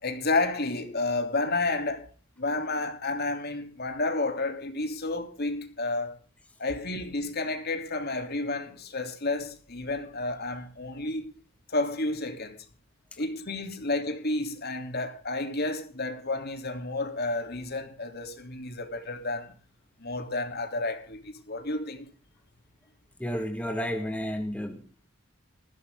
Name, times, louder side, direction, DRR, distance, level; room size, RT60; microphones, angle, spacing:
voice 1, 0.0-2.1 2.4-6.2 6.6-11.3 11.7-12.6 13.2-19.5 20.0-22.1, left 2 dB, 45° left, 3.2 m, -31 dB
voice 2, 23.2-25.1, equal, 5° left, 1.8 m, -32 dB
20.0 x 16.5 x 3.8 m
head